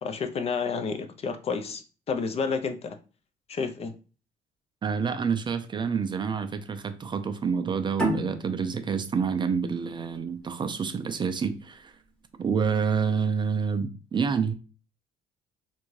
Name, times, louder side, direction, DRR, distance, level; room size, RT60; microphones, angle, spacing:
voice 1, 0.0-3.0 3.5-3.9, left 5 dB, 35° left, 0.4 m, -30 dB
voice 2, 4.8-12.0 12.4-14.5, right 6 dB, 30° right, 0.4 m, -28 dB
sound 1, 8.0-11.2, right 1 dB, 5° left, 1.0 m, -32 dB
2.6 x 2.2 x 3.1 m
cardioid pair, 110°, 17 cm